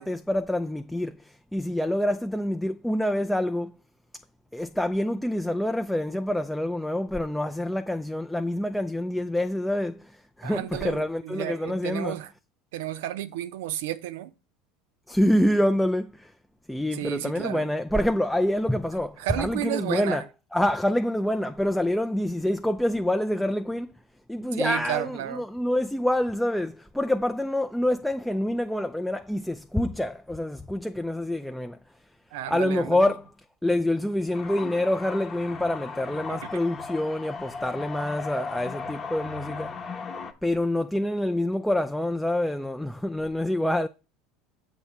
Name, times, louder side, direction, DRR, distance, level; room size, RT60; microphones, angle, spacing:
voice 1, 0.0-3.8 4.5-12.2 15.1-16.3 16.7-20.2 20.5-23.9 24.3-31.8 32.5-33.3 33.6-39.7 40.4-43.9, left 1 dB, 5° left, 0.4 m, -26 dB
voice 2, 10.4-12.3 12.7-14.3 16.9-17.7 19.2-20.2 24.5-25.4 32.3-33.0 36.4-36.5, right 14 dB, 80° right, 0.5 m, -32 dB
sound 1, 34.3-40.3, left 5 dB, 35° left, 0.9 m, -37 dB
7.1 x 3.1 x 5.8 m
supercardioid pair, 95°, 0 cm